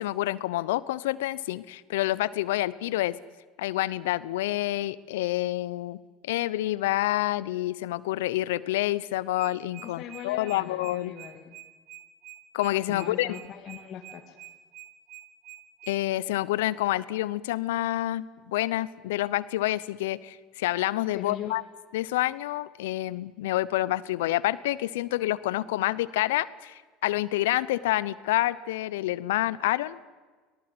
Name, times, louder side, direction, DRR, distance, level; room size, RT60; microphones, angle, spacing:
voice 1, 0.0-3.2 3.6-6.0 6.2-11.1 12.5-13.4 15.9-21.6 21.9-30.1, left 16 dB, 80° left, 19 dB, 0.8 m, -28 dB
sound 1, 9.4-16.0, right 15 dB, 45° right, 2.5 m, -46 dB
voice 2, 10.0-11.5 12.9-14.4 21.1-21.5, left 9 dB, 50° left, 2 dB, 2.3 m, -40 dB
26.0 x 18.5 x 7.9 m, 1.4 s
hypercardioid pair, 80°, 0 cm